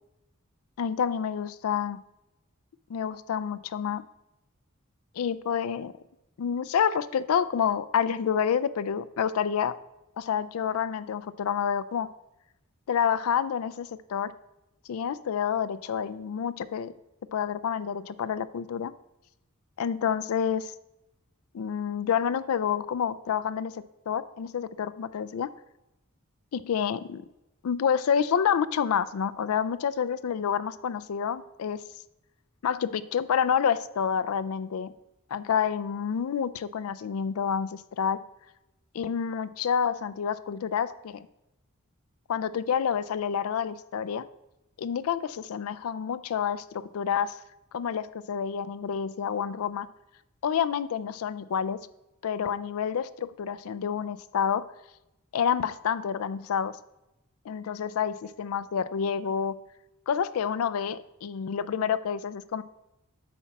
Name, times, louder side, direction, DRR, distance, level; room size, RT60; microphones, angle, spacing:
voice 1, 0.8-2.0 2.9-4.0 5.2-5.9 6.4-9.7 10.2-12.1 12.9-14.3 14.9-16.9 17.3-18.9 19.8-20.7 21.5-25.5 26.5-27.3 27.6-31.8 32.6-34.9 35.3-38.2 38.9-41.3 42.3-44.3 44.8-47.4 47.7-49.9 50.4-51.8 52.2-54.6 55.3-56.8 57.5-59.6 60.1-62.6, left 7 dB, 85° left, 15 dB, 0.4 m, -28 dB
8.4 x 4.1 x 5.9 m, 0.91 s
head